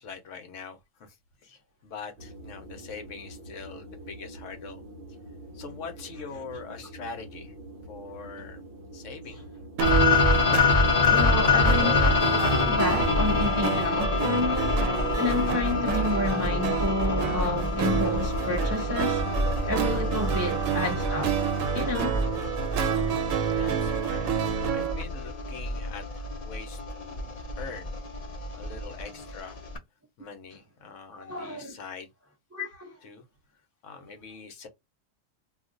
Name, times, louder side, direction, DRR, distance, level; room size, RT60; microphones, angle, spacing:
voice 1, 0.0-4.8 5.5-7.5 7.9-8.6 8.9-9.4 23.5-27.3 27.6-28.0 28.5-29.6 30.2-32.1 33.0-33.2 33.8-34.7, left 5 dB, 70° left, 1.1 m, -43 dB
sound 1, 2.2-10.3, right 1 dB, 55° right, 0.7 m, -45 dB
sound 2, 9.8-29.8, left 3 dB, 45° left, 0.5 m, -26 dB
sound 3, 9.8-25.0, right 8 dB, 75° right, 1.0 m, -29 dB
voice 2, 11.1-14.8 15.2-19.2 19.7-21.3 21.7-22.2 31.1-31.8 32.5-32.9, left 2 dB, 20° right, 0.4 m, -30 dB
2.5 x 2.3 x 3.7 m
omnidirectional pair, 1.4 m